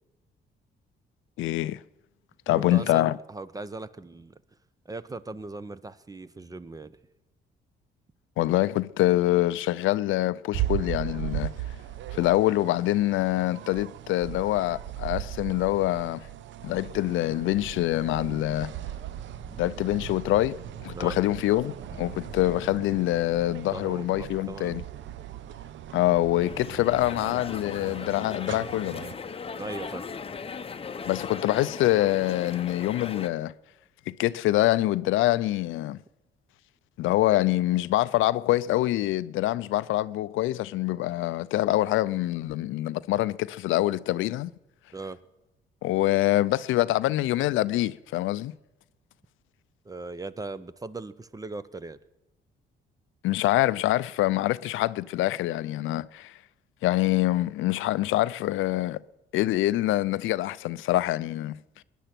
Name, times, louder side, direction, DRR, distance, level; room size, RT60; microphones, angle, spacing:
voice 1, 1.4-1.8 2.5-3.2 8.4-11.5 12.1-16.3 16.6-18.7 19.6-20.6 20.8-24.8 25.9-29.0 31.1-33.5 34.1-36.0 37.0-44.5 45.8-48.5 53.2-56.4 56.8-59.0 59.3-61.8, left 16 dB, 85° left, 0.5 m, -25 dB
voice 2, 2.5-4.4 4.9-6.9 20.9-21.2 23.7-24.8 29.6-30.0 44.9-45.2 49.8-52.0, right 3 dB, 20° right, 0.6 m, -38 dB
sound 1, 10.5-29.1, right 13 dB, 70° right, 0.6 m, -38 dB
sound 2, 16.6-25.7, right 3 dB, 35° right, 1.2 m, -48 dB
sound 3, 26.4-33.3, left 5 dB, 30° left, 0.7 m, -38 dB
20.5 x 10.0 x 5.9 m
cardioid pair, 90°, 20 cm